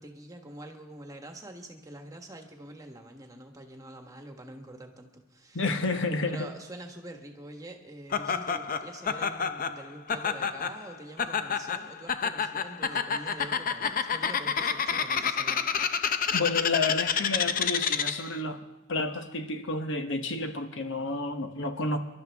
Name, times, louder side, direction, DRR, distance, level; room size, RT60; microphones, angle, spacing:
voice 1, 0.0-5.6 6.3-15.7 16.0-16.3, right 1 dB, 15° right, 3 dB, 1.4 m, -45 dB
voice 2, 5.5-6.5 16.3-18.6 18.9-22.0, left 3 dB, 65° left, 7 dB, 1.1 m, -30 dB
Laughter, 8.1-18.4, left 6 dB, 45° left, 0.6 m, -29 dB
26.0 x 12.0 x 3.5 m, 0.98 s
head